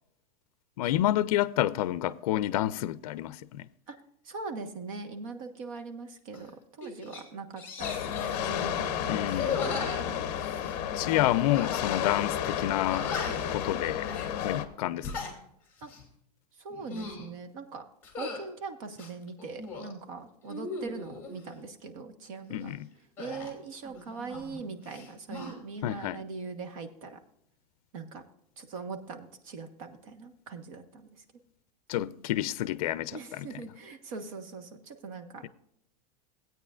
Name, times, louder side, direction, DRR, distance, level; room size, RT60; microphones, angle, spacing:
voice 1, 0.8-3.7 9.1-9.7 10.9-13.1 13.5-14.1 14.4-15.3 22.5-22.9 25.8-26.2 31.9-33.5 35.4-35.5, left 14 dB, 60° left, 0.5 m, -29 dB
voice 2, 4.2-9.3 15.8-15.9 16.6-17.8 18.2-22.7 23.2-27.2 27.9-28.2 28.6-31.1 33.1-35.5, right 4 dB, 55° right, 1.4 m, -41 dB
sound 1, 6.3-6.5 6.8-7.2 7.6-8.4 9.2-10.8 11.5-12.0 12.3-12.4 12.9-13.5 14.0-14.3 14.9-15.3 15.8-16.1 16.7-17.3 18.0-18.4 18.9-19.9 20.4-21.4 23.2-24.6 24.8-25.5, left 4 dB, 10° left, 2.5 m, -38 dB
sound 2, 7.8-14.7, left 9 dB, 35° left, 0.9 m, -32 dB
17.0 x 9.0 x 2.5 m
supercardioid pair, 175°, 21 cm